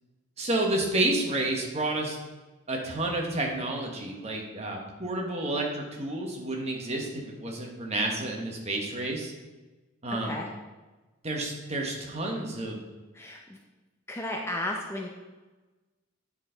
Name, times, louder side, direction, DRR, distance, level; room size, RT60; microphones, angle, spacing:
voice 1, 0.4-2.2 2.7-7.1 7.4-9.3 10.0-10.4 11.2-12.8, right 2 dB, 30° right, 1 dB, 1.1 m, -30 dB
voice 2, 14.1-15.1, left 1 dB, 10° left, 0 dB, 0.5 m, -33 dB
9.1 x 4.3 x 3.8 m, 1.2 s
head